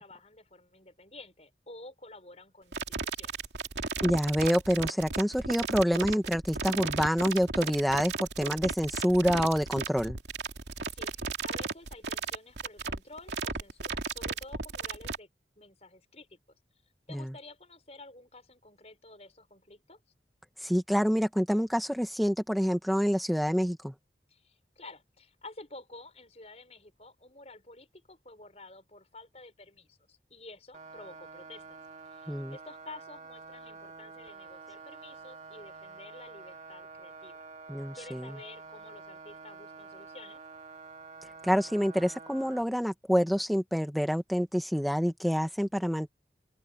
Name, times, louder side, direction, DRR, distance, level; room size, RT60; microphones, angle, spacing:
voice 1, 0.0-2.8 3.1-3.3 10.8-15.3 15.6-16.4 17.1-20.0 24.3-31.8 32.1-37.4 37.9-40.4, left 2 dB, 35° left, 5.8 m, -50 dB
sound 1, 2.7-15.2, right 4 dB, 80° right, 2.5 m, -35 dB
voice 2, 4.0-10.2 17.1-17.3 20.6-23.9 32.3-32.6 37.7-38.3 41.4-46.1, equal, ahead, 1.6 m, -27 dB
sound 2, 30.7-42.6, right 4 dB, 40° right, 2.3 m, -48 dB
head